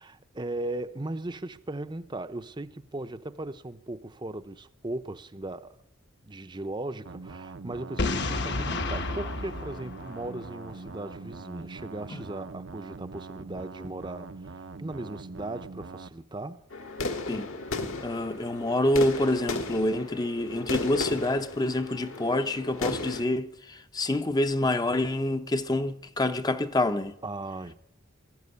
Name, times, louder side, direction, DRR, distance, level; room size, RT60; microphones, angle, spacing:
voice 1, 0.0-5.8 6.2-16.6 27.2-27.7, right 2 dB, 20° right, 0.7 m, -37 dB
sound 1, 7.1-16.1, right 3 dB, 60° right, 0.7 m, -43 dB
Boom, 8.0-10.8, left 3 dB, 55° left, 1.2 m, -31 dB
sound 2, 16.7-23.2, left 3 dB, 70° left, 1.9 m, -35 dB
voice 2, 18.0-27.1, left 1 dB, 20° left, 0.6 m, -27 dB
20.0 x 13.5 x 9.7 m
head